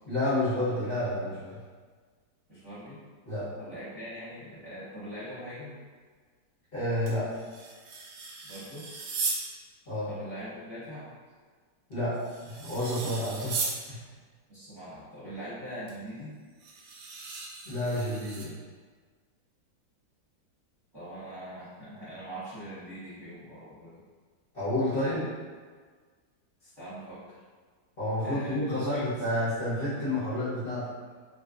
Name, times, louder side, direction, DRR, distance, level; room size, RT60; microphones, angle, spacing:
voice 1, 0.0-1.6 3.3-3.5 6.7-7.3 9.9-10.1 11.9-12.2 12.4-14.0 17.6-18.5 24.5-25.3 28.0-30.9, left 1 dB, 40° left, -14 dB, 1.1 m, -30 dB
voice 2, 2.5-3.0 3.6-5.7 8.4-8.9 10.1-11.1 14.5-16.3 20.9-24.0 25.0-25.1 26.6-27.4 28.2-29.1, equal, 15° right, -13 dB, 1.1 m, -42 dB
sound 1, 7.1-9.5 11.9-13.8 15.9-16.0 16.6-18.5, right 4 dB, 85° right, 1.2 m, -36 dB
3.5 x 2.7 x 2.4 m, 1.5 s
omnidirectional pair, 1.8 m